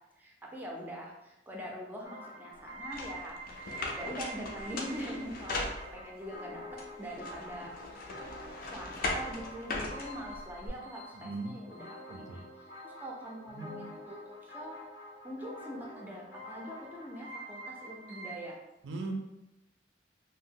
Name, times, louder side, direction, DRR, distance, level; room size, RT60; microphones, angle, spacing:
voice 1, 0.2-6.6 7.0-7.7 8.2-12.4 12.8-14.8 15.2-18.6, equal, 10° right, -1 dB, 0.4 m, -43 dB
sound 1, 2.0-18.4, right 1 dB, 85° left, 0.8 m, -47 dB
sound 2, 2.9-6.3 6.8-10.7, left 2 dB, 50° left, 0.4 m, -39 dB
voice 2, 11.2-11.5 12.1-12.4 13.5-13.9 18.8-19.1, right 2 dB, 70° right, 3 dB, 0.4 m, -39 dB
2.7 x 2.0 x 3.5 m, 0.93 s
head